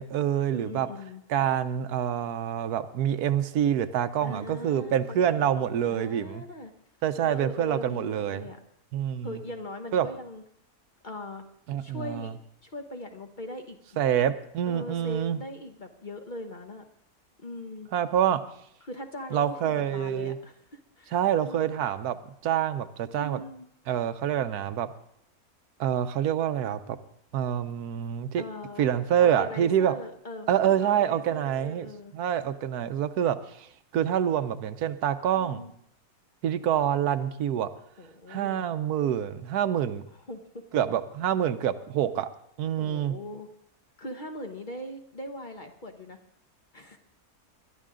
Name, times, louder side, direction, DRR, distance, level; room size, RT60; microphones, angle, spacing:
voice 1, 0.0-0.9 1.3-6.4 7.0-8.5 8.9-9.4 9.9-10.1 11.7-12.3 14.0-15.4 17.9-18.4 19.3-20.4 21.1-22.2 22.4-23.4 23.9-24.9 25.8-27.0 27.3-28.4 28.8-29.9 30.5-31.9 32.1-33.7 33.9-35.6 36.4-37.7 38.3-40.1 40.7-42.3 42.6-43.1, right 9 dB, 80° right, 11 dB, 1.2 m, -26 dB
voice 2, 0.5-1.2 4.2-6.7 7.2-8.6 9.2-10.4 11.0-11.5 11.8-12.3 12.6-14.0 14.7-16.9 17.4-18.2 18.8-21.7 23.1-23.7 28.4-28.9 29.2-32.1 35.3-35.7 38.0-38.7 40.1-40.6 42.8-43.5 44.0-46.2 46.7-47.0, left 1 dB, 35° left, 5 dB, 0.9 m, -40 dB
21.0 x 12.0 x 3.8 m, 0.69 s
omnidirectional pair, 1.6 m